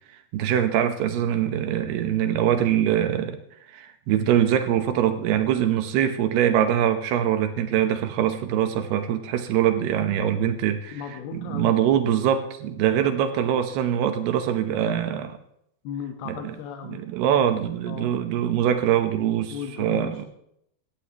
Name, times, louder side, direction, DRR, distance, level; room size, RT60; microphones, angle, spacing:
voice 1, 0.3-3.4 3.7-11.0 11.3-15.4 16.3-16.6 16.8-20.3, right 10 dB, 80° right, 8 dB, 3.0 m, -23 dB
voice 2, 10.9-11.8 15.8-17.0 17.9-18.2 19.5-20.3, left 7 dB, 75° left, 4 dB, 3.2 m, -36 dB
18.5 x 14.0 x 3.0 m, 0.74 s
omnidirectional pair, 4.7 m